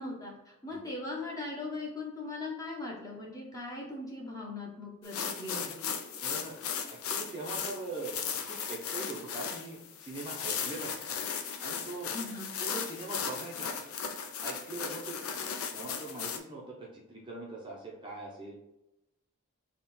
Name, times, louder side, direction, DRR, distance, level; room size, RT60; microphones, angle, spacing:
voice 1, 0.0-5.9 12.0-12.5, left 2 dB, 15° left, -3 dB, 0.9 m, -39 dB
sound 1, 5.0-16.4, left 7 dB, 85° left, 0.5 m, -37 dB
voice 2, 6.2-6.6 6.9-8.2 8.4-11.2 11.6-12.1 12.6-13.8 14.4-15.2 15.7-18.6, right 2 dB, 20° right, -3 dB, 0.7 m, -42 dB
3.6 x 2.4 x 4.3 m, 0.89 s
head